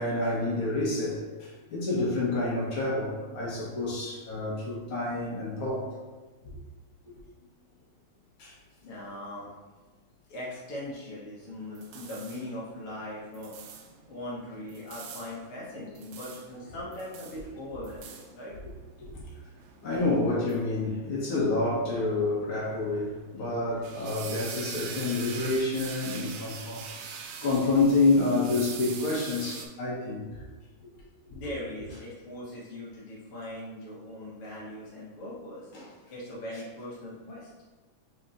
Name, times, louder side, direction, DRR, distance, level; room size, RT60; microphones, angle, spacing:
voice 1, 0.0-5.9 8.4-8.5 19.0-19.2 19.8-30.4 35.7-35.9, left 3 dB, 55° left, -7 dB, 1.5 m, -28 dB
voice 2, 8.8-9.5 10.3-13.6 14.1-18.6 31.3-37.5, left 1 dB, 85° left, -7 dB, 1.2 m, -40 dB
sound 1, 11.4-29.7, right 6 dB, 85° right, 1.8 m, -44 dB
5.3 x 4.1 x 2.5 m, 1.2 s
omnidirectional pair, 4.0 m